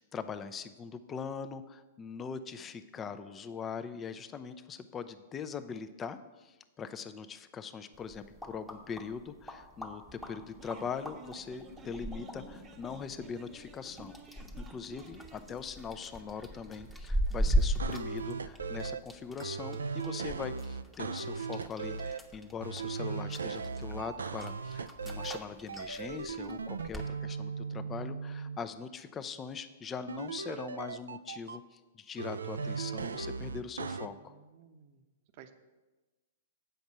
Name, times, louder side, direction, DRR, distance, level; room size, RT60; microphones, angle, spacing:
voice 1, 0.0-34.3, left 6 dB, 25° left, 11 dB, 0.6 m, -41 dB
sound 1, 7.9-27.1, equal, ahead, 1.0 m, -39 dB
sound 2, 10.2-15.5, right 3 dB, 30° right, 1.0 m, -53 dB
sound 3, 17.8-19.0 19.4-22.2 22.6-25.4 25.7-28.6 30.1-31.6 32.2-34.1, right 5 dB, 85° right, 0.4 m, -38 dB
voice 2, 33.8-35.0 35.4-35.5, right 8 dB, 50° right, 8 dB, 0.9 m, -56 dB
7.9 x 5.3 x 7.3 m, 1.2 s
hypercardioid pair, 110°, 0 cm